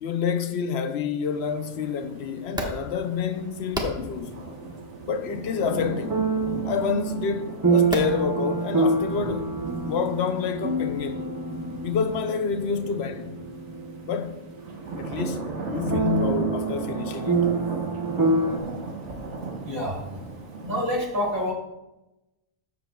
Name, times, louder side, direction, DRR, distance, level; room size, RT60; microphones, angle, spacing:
voice 1, 0.0-4.4 5.1-6.2 6.6-9.5 9.8-11.3 11.8-13.4 14.1-14.4 15.0-17.5, left 6 dB, 70° left, 0.9 m, -28 dB
sound 1, 1.2-20.8, right 3 dB, 85° right, 1.4 m, -38 dB
sound 2, 2.4-10.3, equal, 5° right, 1.1 m, -39 dB
sound 3, 3.8-5.1 6.1-14.8 15.2-15.3 15.9-18.6, right 3 dB, 25° right, 0.5 m, -27 dB
voice 2, 19.6-20.0 20.6-21.5, left 1 dB, 50° right, 3.0 m, -27 dB
13.5 x 7.1 x 2.3 m
omnidirectional pair, 1.2 m